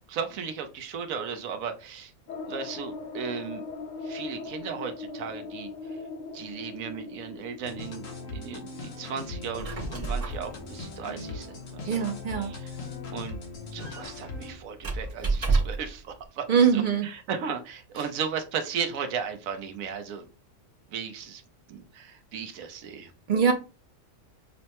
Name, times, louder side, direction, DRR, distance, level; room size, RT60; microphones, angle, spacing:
voice 1, 0.1-2.1 2.5-3.6 4.0-6.0 6.3-12.1 12.4-12.7 13.1-13.4 13.7-16.5 16.7-20.3 20.9-21.4 21.7-23.1, right 6 dB, 85° right, 1.1 m, -36 dB
sound 1, 2.3-10.8 11.1-11.2 11.5-11.6, left 3 dB, 45° left, 0.7 m, -40 dB
sound 2, 7.6-14.5, left 3 dB, 75° left, 1.4 m, -39 dB
Squeak, 9.3-16.0, right 4 dB, 30° right, 0.9 m, -32 dB
voice 2, 11.9-12.5 16.5-17.1 23.3-23.5, right 7 dB, 50° right, 0.6 m, -22 dB
5.5 x 2.1 x 2.9 m
omnidirectional pair, 1.4 m